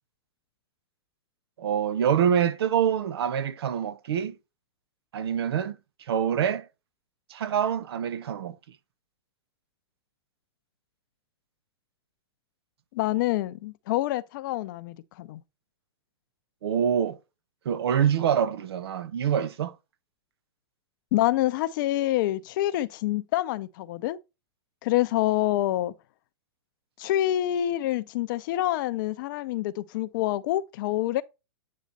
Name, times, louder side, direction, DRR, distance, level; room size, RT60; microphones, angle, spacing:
voice 1, 1.6-4.3 5.1-5.8 6.1-6.7 7.3-8.6 16.6-17.2 17.6-19.7, right 8 dB, 70° right, 0.8 m, -25 dB
voice 2, 12.9-15.4 21.1-24.2 24.8-25.9 27.0-31.2, left 14 dB, 50° left, 0.6 m, -27 dB
8.6 x 3.1 x 4.0 m
hypercardioid pair, 115°, 14 cm